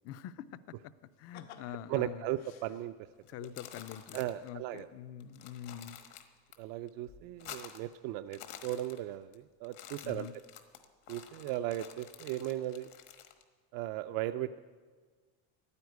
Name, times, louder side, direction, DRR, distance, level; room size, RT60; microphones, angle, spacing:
voice 1, 0.0-0.9 1.2-2.3 3.3-6.0 10.0-10.3, left 10 dB, 45° left, 15 dB, 0.5 m, -45 dB
sound 1, 1.1-3.3 4.7-4.8 5.2-5.7 6.0-6.1, left 8 dB, 85° left, 1.5 m, -56 dB
voice 2, 1.9-2.9 3.4-3.5 4.1-4.9 6.6-10.3 11.1-12.9 13.7-14.6, right 13 dB, 70° right, 10 dB, 0.5 m, -37 dB
sound 2, 3.3-4.5 4.8-4.9 5.2-6.6 6.9-7.9 8.2-9.4 9.6-13.4, left 10 dB, 60° left, 1.4 m, -50 dB
12.0 x 9.7 x 9.3 m, 1.5 s
cardioid pair, 155°, 34 cm